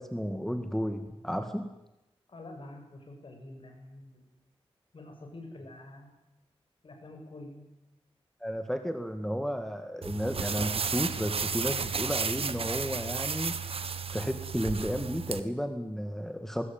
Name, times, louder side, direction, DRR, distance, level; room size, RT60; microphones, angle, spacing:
voice 1, 0.0-1.7 8.4-13.7 14.1-16.6, equal, 5° left, 7 dB, 1.9 m, -33 dB
voice 2, 2.3-4.3 4.9-6.2 6.8-7.7, left 2 dB, 55° left, 4 dB, 6.7 m, -47 dB
sound 1, 10.0-15.4, right 5 dB, 70° right, 1.5 m, -33 dB
21.5 x 19.0 x 9.1 m, 0.95 s
wide cardioid pair, 90°, 10 cm